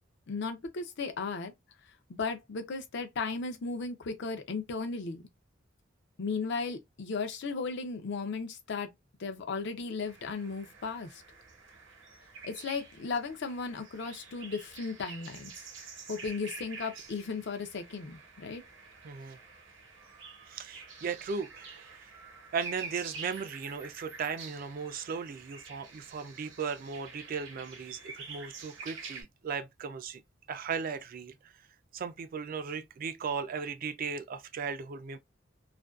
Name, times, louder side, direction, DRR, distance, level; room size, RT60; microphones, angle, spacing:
voice 1, 0.3-1.5 2.1-5.2 6.2-8.9 9.2-11.2 12.4-15.5 16.1-18.6, left 4 dB, 60° left, 0.5 m, -35 dB
sound 1, 10.0-29.2, right 5 dB, 70° right, 0.9 m, -48 dB
voice 2, 19.0-19.4 20.5-22.1 22.5-30.2 30.5-31.5 31.9-35.2, right 6 dB, 45° right, 0.3 m, -37 dB
2.5 x 2.2 x 2.3 m
head